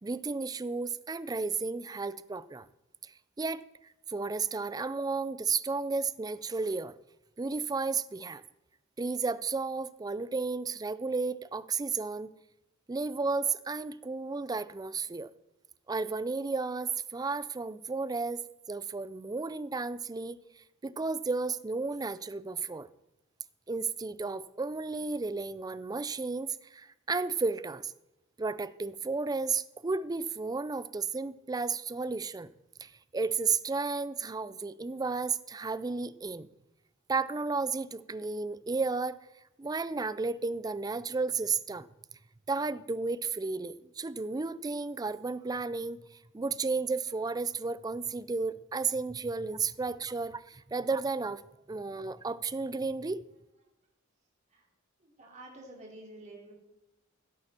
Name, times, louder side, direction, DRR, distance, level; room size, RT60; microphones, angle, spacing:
voice 1, 0.0-2.7 3.0-3.1 3.4-3.6 4.1-6.9 7.4-8.4 9.0-12.3 12.9-15.3 15.9-18.4 18.7-22.9 23.7-27.9 28.4-32.5 32.8-36.5 37.1-39.2 39.6-41.9 42.5-46.0 46.3-51.4 51.7-53.2, right 4 dB, 20° right, 16 dB, 0.4 m, -33 dB
voice 2, 55.0-56.5, right 1 dB, 35° right, -2 dB, 3.4 m, -49 dB
16.0 x 8.6 x 4.3 m, 0.93 s
head